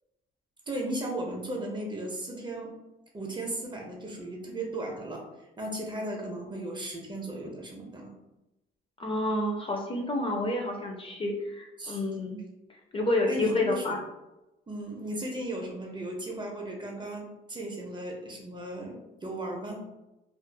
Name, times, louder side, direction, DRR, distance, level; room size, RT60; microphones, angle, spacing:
voice 1, 0.7-2.7 3.1-5.2 5.6-8.1 11.8-12.0 13.3-14.0 14.7-19.0 19.2-19.8, right 1 dB, 25° right, 0 dB, 0.6 m, -36 dB
voice 2, 9.0-12.4 12.9-14.0, left 2 dB, 25° left, 0 dB, 0.4 m, -29 dB
2.5 x 2.4 x 2.2 m, 0.97 s
cardioid pair, 90°, 20 cm